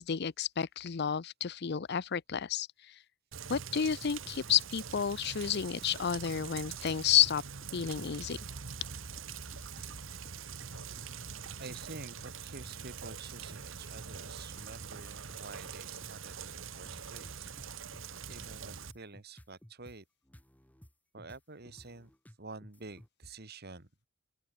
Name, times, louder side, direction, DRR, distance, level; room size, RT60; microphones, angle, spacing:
voice 1, 0.0-2.9 3.5-7.4 7.7-8.4, left 8 dB, 55° left, 0.5 m, -31 dB
Rain, 3.3-18.9, right 6 dB, 70° right, 1.4 m, -44 dB
sound 1, 3.5-4.6 5.0-5.1 5.4-5.6 5.8-6.5 6.9-12.3 12.6-12.8 13.1-14.2 14.6-20.0 20.2-23.1, equal, 10° left, 1.7 m, -55 dB
voice 2, 11.6-17.9 18.3-20.0 21.1-22.1 22.4-23.9, right 3 dB, 50° right, 2.3 m, -49 dB
open air
head